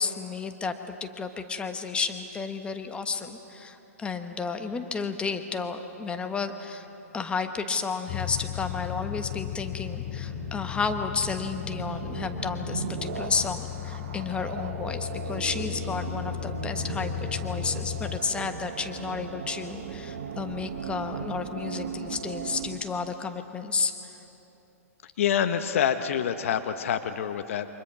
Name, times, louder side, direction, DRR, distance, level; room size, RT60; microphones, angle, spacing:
voice 1, 0.0-6.9 7.1-24.1, left 5 dB, 15° left, 7 dB, 1.3 m, -32 dB
sound 1, 6.4-22.8, right 6 dB, 60° right, 2.1 m, -38 dB
sound 2, 8.1-18.2, left 13 dB, 35° left, 0.6 m, -36 dB
voice 2, 25.2-27.7, left 9 dB, 60° left, 9 dB, 1.1 m, -26 dB
28.5 x 25.0 x 6.0 m, 3.0 s
figure-of-eight pair, 115°, 8 cm